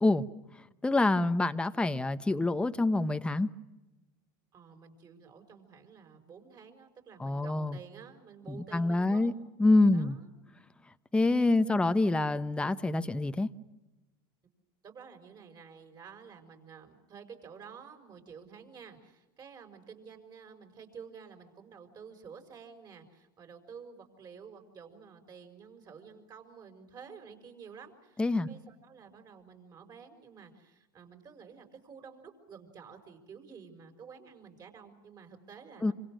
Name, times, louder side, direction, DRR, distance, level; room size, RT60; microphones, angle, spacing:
voice 1, 0.8-3.5 7.2-7.8 8.5-9.3 9.6-10.2 11.1-13.5 28.2-28.5 35.8-35.9, left 2 dB, 10° left, 1.1 m, -26 dB
voice 2, 4.5-9.3 9.9-10.3 11.6-12.0 14.8-35.9, right 6 dB, 35° right, 5.5 m, -51 dB
26.5 x 26.5 x 6.4 m
supercardioid pair, 105°, 12 cm